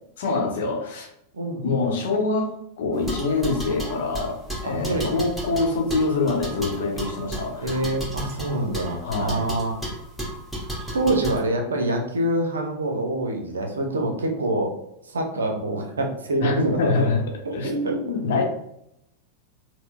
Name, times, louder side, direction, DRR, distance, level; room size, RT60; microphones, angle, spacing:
voice 1, 0.2-1.1 1.6-7.7 9.0-9.5 16.4-17.2 17.5-18.4, left 3 dB, 55° left, 1 dB, 0.8 m, -25 dB
voice 2, 1.3-1.7 4.6-5.1 7.6-9.8 10.9-14.7 15.1-16.9 17.4-18.2, right 1 dB, 70° right, 2 dB, 0.6 m, -26 dB
sound 1, 2.9-11.4, right 1 dB, ahead, 1.1 m, -33 dB
4.3 x 2.1 x 2.2 m, 0.78 s
figure-of-eight pair, 90°, 0 cm